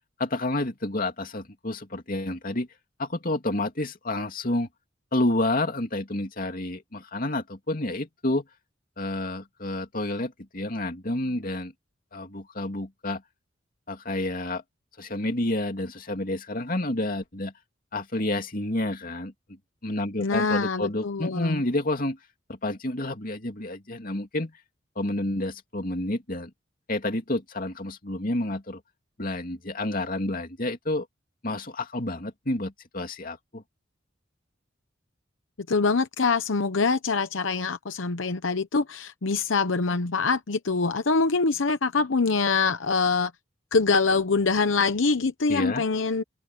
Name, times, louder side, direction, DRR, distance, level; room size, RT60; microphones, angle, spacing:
voice 1, 0.2-2.7 3.0-4.7 5.1-8.4 9.0-11.7 12.1-13.2 13.9-14.6 15.0-17.5 17.9-22.2 22.5-24.5 25.0-26.5 26.9-28.8 29.2-31.1 31.4-33.6 45.5-45.8, left 1 dB, 45° left, 2.7 m, -29 dB
voice 2, 20.2-21.6 35.7-43.3 43.7-46.2, left 4 dB, 80° left, 0.9 m, -24 dB
open air
head